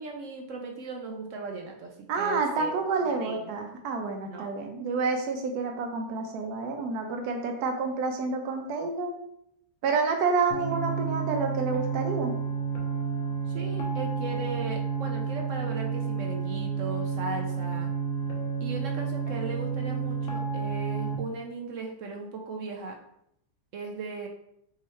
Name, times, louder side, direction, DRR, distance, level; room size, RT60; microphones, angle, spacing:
voice 1, 0.0-3.5 4.2-4.5 13.5-17.9 18.6-23.0 23.7-24.3, right 3 dB, 65° right, 2 dB, 0.8 m, -37 dB
voice 2, 2.1-9.2 9.8-12.4, right 4 dB, 85° right, 3 dB, 1.2 m, -29 dB
sound 1, 10.5-21.2, right 5 dB, 60° left, 1.1 m, -30 dB
3.6 x 3.1 x 4.2 m, 0.74 s
omnidirectional pair, 1.6 m